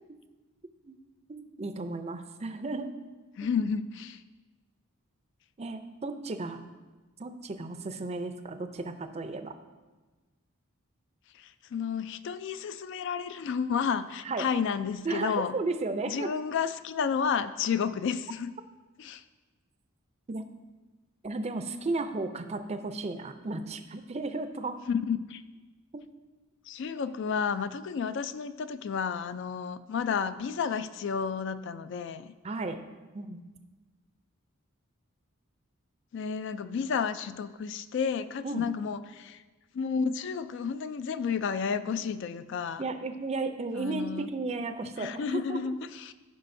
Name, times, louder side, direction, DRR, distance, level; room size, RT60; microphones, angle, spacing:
voice 1, 1.3-2.9 3.4-3.5 5.6-6.7 7.2-9.6 14.2-14.5 15.0-16.3 20.3-20.4 21.2-24.8 32.4-32.8 33.1-33.4 38.4-38.6 42.8-44.0 44.3-45.6, right 3 dB, 30° right, 8 dB, 0.4 m, -34 dB
voice 2, 3.4-4.2 11.3-15.5 16.1-18.5 19.0-19.2 24.9-25.4 26.7-32.3 36.1-39.4 39.7-42.8 43.7-44.3 45.0-46.1, left 6 dB, 55° left, 13 dB, 0.3 m, -31 dB
14.5 x 5.4 x 2.6 m, 1.2 s
head